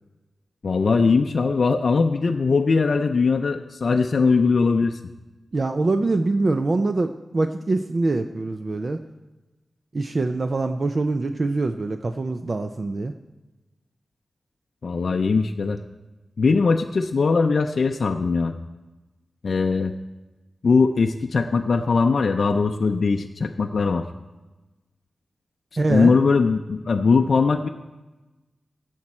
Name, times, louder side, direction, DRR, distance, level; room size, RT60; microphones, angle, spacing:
voice 1, 0.6-5.0 14.8-15.8 16.4-18.6 19.4-19.9 20.6-24.0 25.9-27.7, left 4 dB, 55° left, 4 dB, 0.5 m, -20 dB
voice 2, 5.5-9.0 9.9-13.1 25.8-26.1, right 3 dB, 40° right, 7 dB, 0.4 m, -24 dB
16.0 x 7.3 x 4.3 m, 1.1 s
wide cardioid pair, 140°, 0 cm